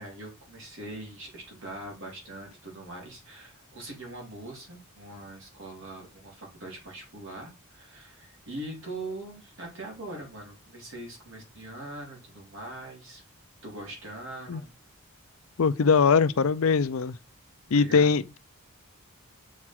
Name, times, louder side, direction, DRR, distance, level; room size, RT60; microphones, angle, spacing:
voice 1, 0.0-13.2 13.6-14.7 17.6-18.1, right 1 dB, 60° right, 3.8 m, -42 dB
voice 2, 15.6-17.2 17.7-18.4, left 5 dB, 65° left, 0.5 m, -22 dB
7.2 x 4.8 x 4.7 m
head